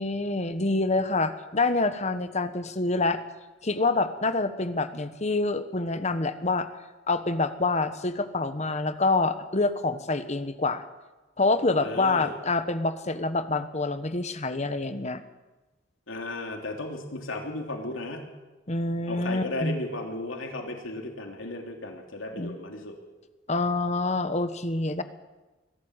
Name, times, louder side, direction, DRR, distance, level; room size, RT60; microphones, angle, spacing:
voice 1, 0.0-3.2 3.6-6.7 7.1-10.8 11.4-15.2 18.7-19.8 22.3-22.5 23.5-25.0, left 3 dB, 35° left, 10 dB, 1.2 m, -26 dB
voice 2, 11.8-12.3 16.1-18.3 19.1-22.9, left 2 dB, 90° left, 2 dB, 3.2 m, -35 dB
22.0 x 13.0 x 9.0 m, 1.1 s
head